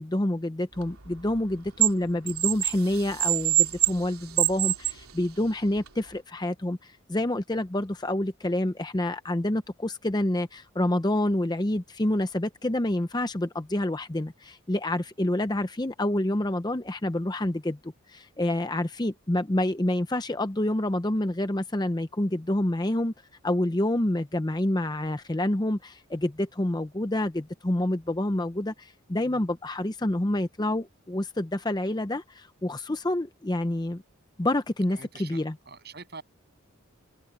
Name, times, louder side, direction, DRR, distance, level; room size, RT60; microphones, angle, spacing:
voice 1, 0.0-23.1 23.4-34.0 34.4-35.5, left 1 dB, 20° left, 0.6 m, -28 dB
sound 1, 0.8-1.9 2.3-5.0 5.8-5.9, right 14 dB, 80° right, 3.0 m, -25 dB
voice 2, 34.9-36.2, right 4 dB, 45° right, 7.7 m, -45 dB
open air
head